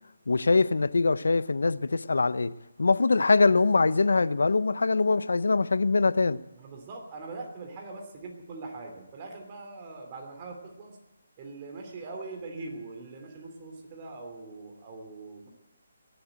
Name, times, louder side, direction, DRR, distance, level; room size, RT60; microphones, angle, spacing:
voice 1, 0.3-2.5 2.8-6.4, left 3 dB, 80° left, 0.7 m, -23 dB
voice 2, 6.5-11.0 11.4-15.5, right 3 dB, 30° right, 3.0 m, -42 dB
20.0 x 7.9 x 9.0 m
hypercardioid pair, 160°, 0 cm